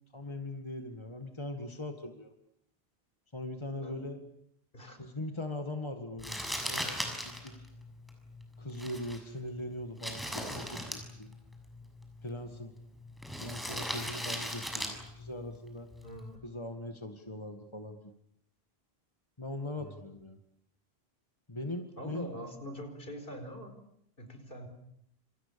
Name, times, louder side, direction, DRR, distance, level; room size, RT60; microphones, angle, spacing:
voice 1, 0.0-2.3 3.3-4.2 5.0-7.0 7.2-7.7 8.6-11.3 12.2-12.7 13.4-15.9 16.4-18.1 19.4-20.4 21.5-22.3, left 1 dB, 25° left, 6 dB, 2.0 m, -40 dB
Crumpling crinkling, 6.2-16.4, equal, ahead, 6.8 m, -40 dB
voice 2, 16.0-16.4 19.8-20.0 22.0-23.7 24.2-24.7, equal, 60° left, 7 dB, 5.1 m, -44 dB
28.5 x 28.0 x 6.9 m, 0.71 s
omnidirectional pair, 1.1 m